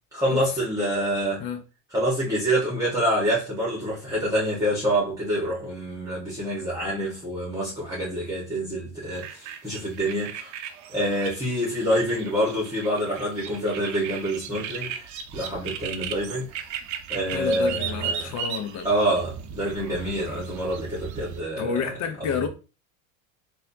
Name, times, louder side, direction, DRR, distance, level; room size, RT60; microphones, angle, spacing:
voice 1, 0.1-1.4 1.9-10.5 10.9-16.5 17.1-18.3 18.8-21.8, right 1 dB, 10° right, 1.5 m, -26 dB
sound 1, 9.1-21.4, right 8 dB, 45° right, 0.6 m, -36 dB
voice 2, 17.3-18.9 21.6-22.5, left 7 dB, 45° left, 0.8 m, -30 dB
4.1 x 2.7 x 2.7 m
supercardioid pair, 105°, 40 cm